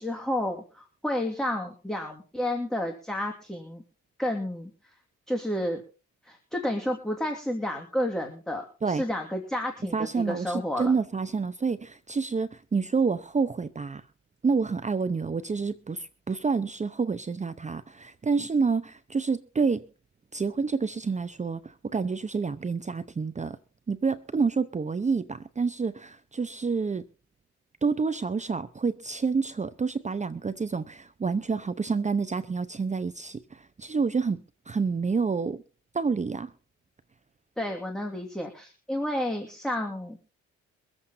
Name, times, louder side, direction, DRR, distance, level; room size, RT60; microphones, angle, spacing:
voice 1, 0.0-3.8 4.2-4.7 5.3-5.8 6.2-10.0 10.3-10.9 37.6-40.2, left 1 dB, ahead, 2.7 m, -31 dB
voice 2, 9.9-14.0 14.4-19.8 20.3-23.6 23.9-27.0 27.8-35.6 35.9-36.5, right 5 dB, 25° right, 0.8 m, -28 dB
23.5 x 7.9 x 4.2 m
cardioid pair, 90°, 30 cm